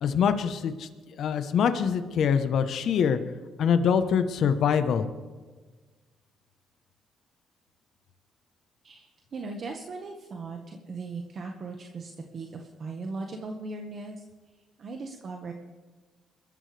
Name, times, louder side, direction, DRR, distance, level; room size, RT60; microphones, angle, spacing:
voice 1, 0.0-3.2 3.6-5.1, left 7 dB, 70° left, 9 dB, 1.1 m, -24 dB
voice 2, 8.8-14.2 14.8-15.5, right 3 dB, 50° right, 2 dB, 1.5 m, -38 dB
24.0 x 13.5 x 3.4 m, 1.3 s
cardioid pair, 90°, 0 cm